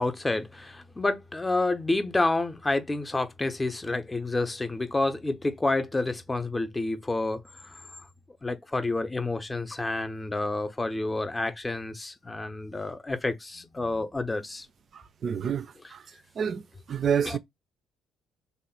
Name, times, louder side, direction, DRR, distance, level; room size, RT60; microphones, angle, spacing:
voice 1, 0.0-8.0 8.4-14.7 15.8-15.9 17.0-17.4, left 2 dB, 20° left, 0.6 m, -29 dB
voice 2, 14.9-16.0 16.4-17.4, right 7 dB, 45° right, 0.4 m, -29 dB
3.3 x 2.3 x 4.2 m
figure-of-eight pair, 45°, 0 cm